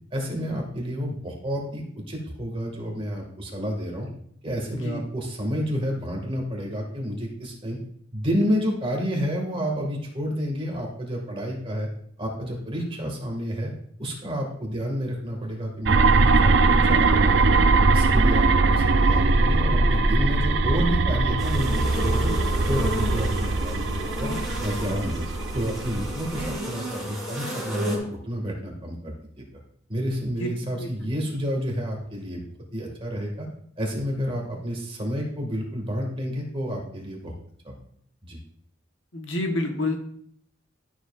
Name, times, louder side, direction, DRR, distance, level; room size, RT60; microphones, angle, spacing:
voice 1, 0.1-4.1 4.4-7.8 8.1-11.9 12.2-13.7 14.0-17.6 17.9-22.3 22.6-24.3 24.6-25.3 25.5-29.4 29.9-32.4 32.7-33.5 33.8-37.3 37.6-37.7 38.2-38.4, equal, 30° right, 0 dB, 2.1 m, -30 dB
sound 1, 15.9-26.6, right 3 dB, 65° right, 0.6 m, -21 dB
sound 2, 21.4-28.0, equal, ahead, 3.0 m, -33 dB
voice 2, 39.1-40.0, left 2 dB, 85° left, 3 dB, 1.4 m, -28 dB
12.5 x 7.2 x 2.6 m, 0.65 s
head